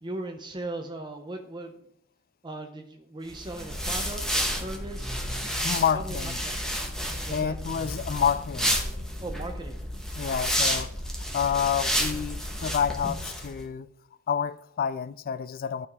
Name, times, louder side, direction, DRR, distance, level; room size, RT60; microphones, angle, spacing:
voice 1, 0.0-1.7 2.4-5.1 5.9-6.6 7.3-7.6 9.2-9.8, right 2 dB, 20° right, 0.6 m, -38 dB
sound 1, 3.3-13.5, equal, 5° left, 1.2 m, -31 dB
voice 2, 5.6-6.4 7.3-8.8 10.2-10.9 11.3-13.9 14.3-15.9, left 7 dB, 45° left, 0.3 m, -28 dB
14.5 x 4.9 x 3.6 m
head